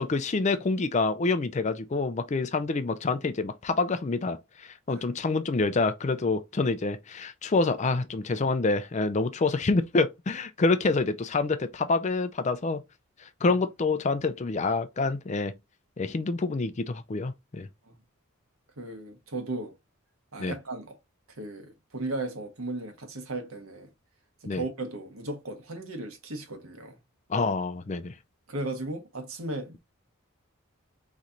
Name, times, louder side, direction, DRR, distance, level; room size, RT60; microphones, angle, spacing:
voice 1, 0.0-12.8 13.2-15.5 16.0-17.7 20.4-20.5 24.5-24.6 27.3-28.1, left 3 dB, 30° left, 0.4 m, -27 dB
voice 2, 18.8-19.7 20.3-21.0 21.3-23.9 24.4-27.0 28.5-29.8, right 2 dB, 70° right, 1.3 m, -36 dB
4.2 x 3.2 x 3.8 m
head